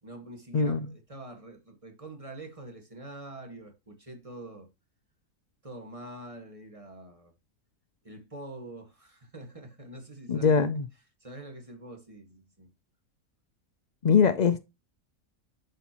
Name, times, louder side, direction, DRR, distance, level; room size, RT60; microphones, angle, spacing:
voice 1, 0.0-4.7 5.6-7.3 8.0-10.7 11.2-12.7, right 1 dB, 25° right, 1.9 m, -45 dB
voice 2, 10.3-10.9 14.0-14.7, left 6 dB, 80° left, 0.3 m, -22 dB
11.0 x 5.6 x 3.0 m
omnidirectional pair, 1.5 m